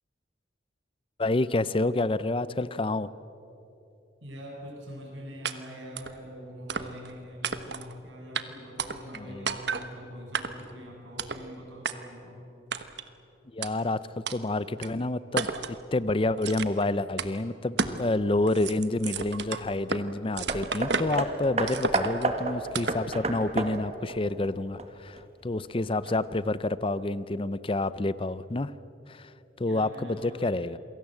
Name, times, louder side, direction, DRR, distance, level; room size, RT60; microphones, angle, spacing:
voice 1, 1.2-3.1 9.1-9.6 13.5-28.7 29.1-29.3 29.6-30.8, left 2 dB, 30° left, 16 dB, 0.6 m, -28 dB
voice 2, 4.2-12.4 29.6-30.6, equal, 85° right, -1 dB, 7.5 m, -44 dB
sound 1, 5.4-5.5 6.0-6.1 6.7-7.1 7.4-7.9 8.3-8.4 8.8-9.2 9.5-9.9 10.3-10.7 11.2-11.4 11.8-11.9 12.7-13.1 13.6-13.7 14.3-14.4 14.8-14.9 15.4-15.8 16.4-16.8 17.2-17.3 17.8-18.0 18.3-20.0 20.4-21.2 21.7-22.3 22.7-23.0, right 5 dB, 65° right, 1.2 m, -32 dB
Hammer, 20.5-25.2 26.1-26.2, right 2 dB, 35° right, 1.9 m, -31 dB
28.0 x 22.5 x 7.8 m, 3.0 s
head